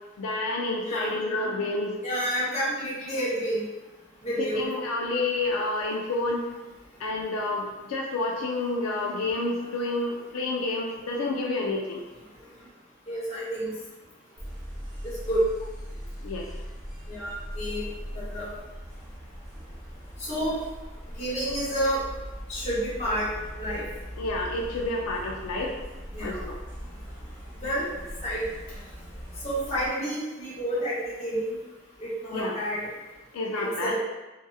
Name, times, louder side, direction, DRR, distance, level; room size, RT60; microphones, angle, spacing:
voice 1, 0.2-2.0 4.4-6.4 7.0-12.0 16.2-16.5 24.2-25.7 26.2-26.5 32.3-32.6 33.3-34.0, left 2 dB, 80° left, 0 dB, 0.3 m, -29 dB
voice 2, 0.8-1.2 2.0-3.7 4.2-4.7 13.1-13.7 15.0-15.4 17.1-17.9 18.1-18.5 20.2-20.6 21.2-22.0 22.5-23.3 23.6-23.8 26.1-26.4 27.6-27.9 28.2-28.5 29.4-31.6 32.0-32.9 33.5-34.0, equal, 30° left, -8 dB, 0.8 m, -29 dB
sound 1, 14.4-29.9, equal, 20° right, 0.7 m, -40 dB
2.6 x 2.4 x 2.3 m, 1.1 s
head